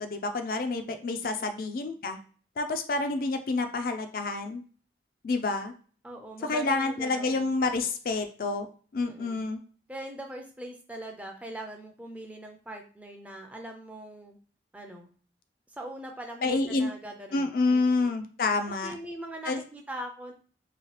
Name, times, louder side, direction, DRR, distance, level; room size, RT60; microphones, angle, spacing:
voice 1, 0.0-2.2 2.6-4.6 5.2-5.7 6.4-8.7 8.9-9.6 16.4-16.9 17.3-18.9 19.5-19.6, left 3 dB, 55° left, 6 dB, 0.4 m, -28 dB
voice 2, 1.4-1.8 6.0-7.5 9.0-9.4 9.9-14.4 14.7-15.1 15.7-18.1 18.8-20.3, right 1 dB, 10° right, 3 dB, 0.4 m, -42 dB
2.9 x 2.7 x 3.1 m, 0.42 s
head